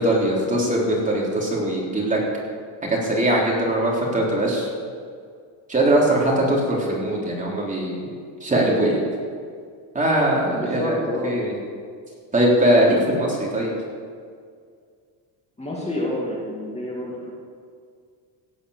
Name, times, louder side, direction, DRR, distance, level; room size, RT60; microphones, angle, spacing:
voice 1, 0.0-2.2 2.8-4.7 5.7-8.1 8.4-9.0 9.9-11.0 11.2-11.5 12.3-13.7, right 1 dB, 15° right, -3 dB, 3.6 m, -21 dB
voice 2, 10.5-11.3 15.6-17.3, left 1 dB, 15° left, -5 dB, 2.5 m, -28 dB
17.0 x 8.7 x 6.6 m, 2.1 s
cardioid pair, 135°, 45 cm